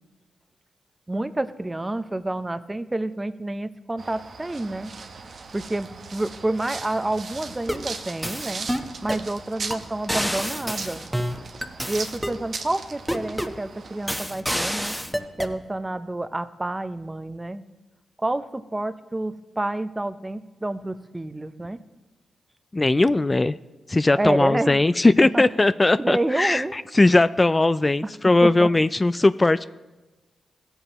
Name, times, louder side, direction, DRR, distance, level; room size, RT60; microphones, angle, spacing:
voice 1, 1.1-4.9 5.5-8.7 9.0-11.0 11.9-14.9 15.4-17.6 18.2-21.8 24.1-24.8 25.3-25.4 25.9-26.7 28.0-28.1 28.4-28.7, right 2 dB, 20° right, 12 dB, 0.7 m, -28 dB
sound 1, 4.0-14.2, right 4 dB, 60° right, 0.9 m, -39 dB
sound 2, 7.5-7.9 8.2-9.3 9.7-9.8 10.1-12.4 13.1-13.6 14.1-15.5, equal, ahead, 1.0 m, -28 dB
voice 2, 22.7-23.6 23.9-29.6, left 2 dB, 30° left, 14 dB, 0.3 m, -19 dB
16.5 x 7.9 x 3.0 m, 1.1 s
supercardioid pair, 40°, 0 cm